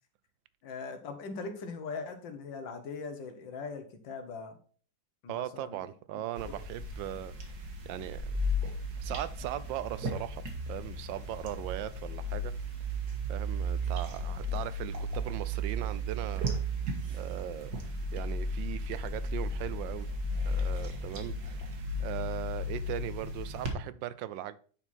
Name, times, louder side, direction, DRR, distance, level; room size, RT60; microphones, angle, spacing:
voice 1, 0.6-4.6 5.2-5.8 6.1-6.2, left 4 dB, 80° left, 1.9 m, -40 dB
voice 2, 5.3-7.6 7.8-8.2 9.0-10.4 10.7-12.5 13.3-16.5 17.1-20.1 20.4-24.6, right 12 dB, 85° right, 1.3 m, -39 dB
sound 1, 6.4-23.7, equal, 60° right, 1.9 m, -35 dB
9.7 x 4.5 x 4.2 m
omnidirectional pair, 2.0 m